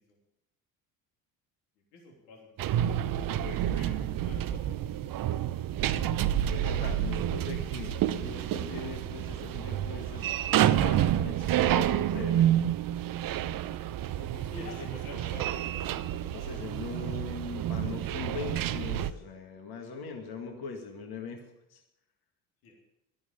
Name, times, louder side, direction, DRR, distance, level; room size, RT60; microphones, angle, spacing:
voice 1, 1.9-5.5 14.1-16.8 22.6-22.8, left 2 dB, 75° left, -1 dB, 3.2 m, -49 dB
sound 1, 2.6-19.1, right 11 dB, 45° right, 0.8 m, -29 dB
voice 2, 6.5-10.3 10.8-12.6 14.8-14.9 16.3-21.8, left 5 dB, 50° left, 4 dB, 2.0 m, -41 dB
12.5 x 10.5 x 6.9 m, 0.84 s
hypercardioid pair, 60°, 47 cm